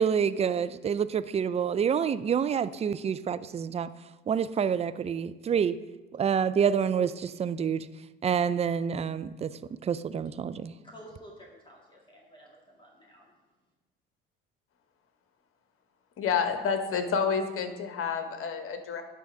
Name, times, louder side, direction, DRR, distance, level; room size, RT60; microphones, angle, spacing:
voice 1, 0.0-3.9 4.3-5.8 6.1-7.9 8.2-9.5 9.8-10.7, right 7 dB, 20° right, 14 dB, 0.4 m, -27 dB
voice 2, 10.8-13.3, equal, 15° left, -2 dB, 1.9 m, -51 dB
voice 3, 16.2-19.0, left 6 dB, 45° left, 7 dB, 1.2 m, -29 dB
10.5 x 3.4 x 6.3 m, 1.2 s
hypercardioid pair, 65°, 29 cm